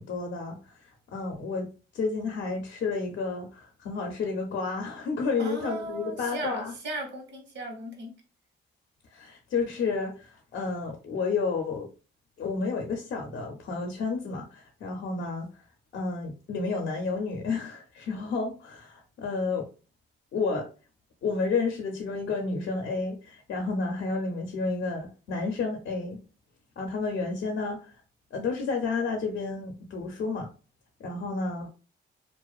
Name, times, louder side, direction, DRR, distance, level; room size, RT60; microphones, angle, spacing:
voice 1, 0.0-1.7 1.9-6.7 9.1-11.9 12.4-15.6 15.9-19.7 20.3-20.7 21.2-26.2 26.8-27.9 28.3-30.5 31.0-31.7, left 4 dB, 65° left, 3 dB, 0.6 m, -31 dB
voice 2, 5.4-8.1, right 1 dB, 65° right, 2 dB, 1.0 m, -36 dB
2.4 x 2.3 x 2.3 m, 0.34 s
cardioid pair, 90°, 20 cm